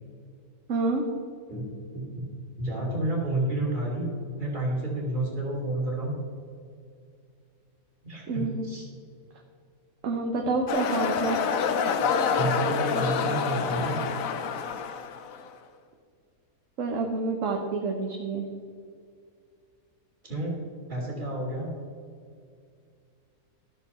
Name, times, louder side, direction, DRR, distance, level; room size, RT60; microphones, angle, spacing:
voice 1, 0.7-1.0 8.3-8.7 10.0-11.4 16.8-18.5, right 3 dB, 60° right, 2 dB, 1.2 m, -28 dB
voice 2, 1.5-2.0 2.6-4.1 4.4-6.2 8.0-8.8 12.4-14.0 20.2-20.5 20.9-21.7, right 1 dB, 30° right, -3 dB, 2.8 m, -30 dB
sound 1, 10.7-15.5, left 6 dB, 65° left, 1.1 m, -27 dB
13.0 x 6.7 x 4.2 m, 2.3 s
omnidirectional pair, 1.7 m